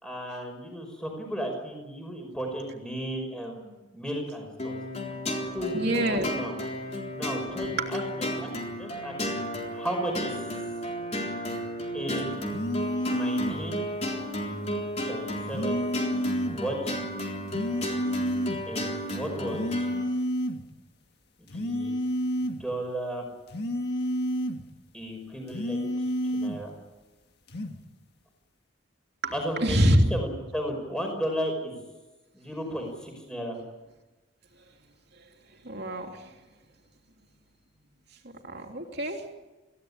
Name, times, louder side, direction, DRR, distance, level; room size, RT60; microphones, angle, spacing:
voice 1, 0.0-4.7 5.5-6.5 7.1-8.5 8.8-9.1 9.7-10.4 11.9-12.5 12.8-13.9 15.0-15.9 16.4-17.0 18.7-19.9 21.5-22.0 22.4-23.3 24.9-25.9 26.2-26.7 29.3-31.7 32.3-33.6, equal, 5° left, 2 dB, 5.6 m, -34 dB
sound 1, 4.6-20.0, equal, 30° left, 3.9 m, -33 dB
voice 2, 5.7-6.3 7.8-7.9 29.2-29.3 29.6-30.1 35.6-36.2 38.4-39.2, equal, 50° right, 2 dB, 3.1 m, -25 dB
sound 2, 12.5-13.7 15.5-16.7 17.5-18.7 19.5-20.7 21.5-22.7 23.5-24.7 25.5-26.7 27.5-27.8, equal, 50° left, 1.8 m, -30 dB
26.0 x 16.5 x 9.9 m, 1.1 s
head